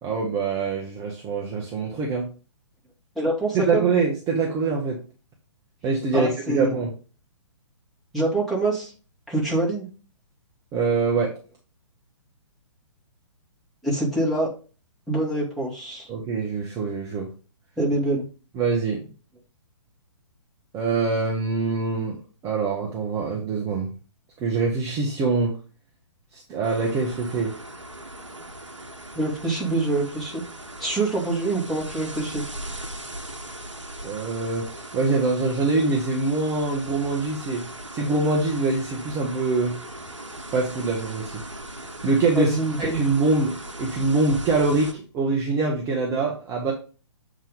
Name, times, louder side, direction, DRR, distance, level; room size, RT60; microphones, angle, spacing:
voice 1, 0.0-2.3 3.5-5.0 5.8-6.9 10.7-11.3 16.1-17.3 18.5-19.0 20.7-22.2 22.4-23.9 24.4-25.5 26.3-27.5 34.0-37.7 37.9-39.8 40.5-41.4 42.0-46.7, right 3 dB, 20° right, -1 dB, 1.1 m, -24 dB
voice 2, 3.2-3.9 6.1-6.7 8.1-8.9 9.3-9.9 13.8-14.5 15.1-16.1 17.8-18.2 29.2-30.4 30.8-32.4 42.4-43.0, right 2 dB, ahead, -6 dB, 2.2 m, -25 dB
sound 1, 26.6-44.9, right 1 dB, 80° right, 1.2 m, -38 dB
7.3 x 3.8 x 5.1 m, 0.36 s
figure-of-eight pair, 125°, 15 cm